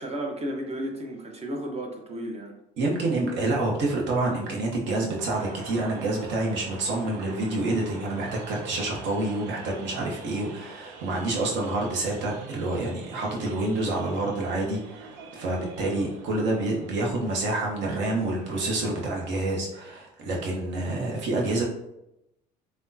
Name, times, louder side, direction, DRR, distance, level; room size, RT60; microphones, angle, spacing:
voice 1, 0.0-2.6, right 1 dB, 30° right, 3 dB, 0.7 m, -33 dB
voice 2, 2.8-21.6, right 2 dB, 60° right, -1 dB, 0.9 m, -28 dB
sound 1, 5.2-19.4, right 4 dB, 85° right, 0.4 m, -46 dB
3.4 x 2.2 x 2.6 m, 0.87 s
hypercardioid pair, 65°, 21 cm